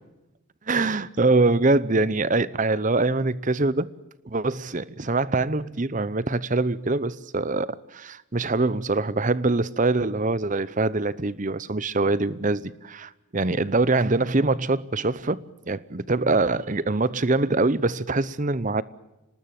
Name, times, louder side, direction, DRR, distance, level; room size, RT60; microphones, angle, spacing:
voice 1, 0.7-3.9 4.2-18.8, right 3 dB, 35° right, 0.8 m, -24 dB
26.5 x 19.5 x 7.7 m
head